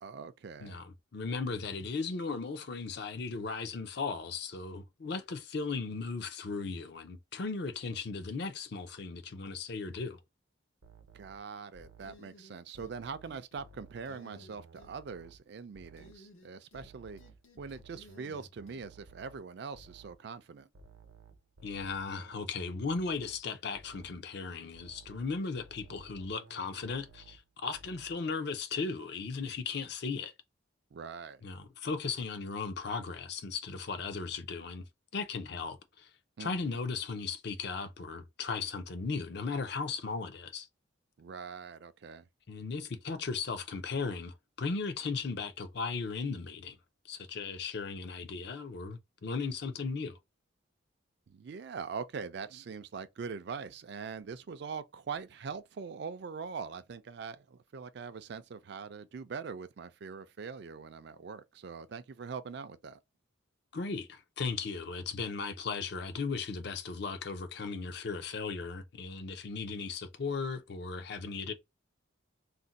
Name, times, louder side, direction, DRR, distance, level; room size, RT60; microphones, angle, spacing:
voice 1, 0.0-0.8 11.1-17.2 17.6-20.7 30.9-31.4 36.4-36.8 41.2-42.3 51.3-63.0, right 5 dB, 55° right, 0.3 m, -42 dB
voice 2, 0.6-10.2 21.6-30.3 31.4-34.8 35.1-36.1 36.4-40.7 42.5-46.8 47.1-50.2 63.7-71.5, left 4 dB, 55° left, 0.5 m, -37 dB
sound 1, 10.8-12.3 12.7-15.5 15.7-16.3 16.7-20.3 20.7-23.5 23.7-24.3 24.7-27.5 27.7-28.3, right 3 dB, 85° right, 0.7 m, -56 dB
sound 2, 12.0-12.9 13.2-13.7 14.0-14.9 16.0-16.9 17.2-18.8, left 1 dB, 80° left, 0.9 m, -57 dB
2.5 x 2.1 x 3.9 m
head